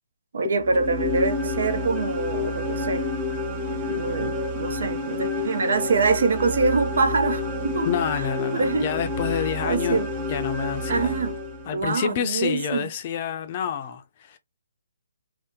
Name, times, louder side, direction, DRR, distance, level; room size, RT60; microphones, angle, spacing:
voice 1, 0.3-3.1 3.7-7.9 8.5-8.9 9.6-10.1 10.9-11.4 11.7-12.9, right 4 dB, 65° right, 0.6 m, -25 dB
sound 1, 0.6-11.9, left 2 dB, 25° right, 0.7 m, -29 dB
voice 2, 7.8-10.0 10.3-11.2 11.7-14.4, left 8 dB, 35° left, 0.5 m, -28 dB
2.7 x 2.1 x 3.6 m
hypercardioid pair, 150°, 0 cm